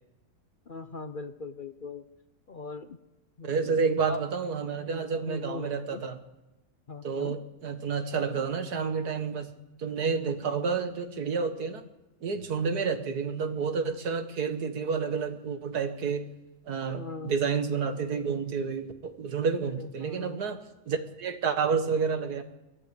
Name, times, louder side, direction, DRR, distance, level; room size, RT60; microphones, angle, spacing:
voice 1, 0.7-2.0 2.5-3.0 3.4-4.3 5.3-6.0 6.9-7.3 12.8-12.9 16.9-17.3 19.6-20.4, left 3 dB, 45° left, 10 dB, 0.7 m, -39 dB
voice 2, 3.4-6.2 7.0-9.5 9.8-11.8 12.2-16.3 16.7-20.6 20.9-22.4, right 5 dB, 90° right, 8 dB, 2.1 m, -30 dB
23.0 x 14.0 x 8.4 m, 1.0 s
omnidirectional pair, 1.6 m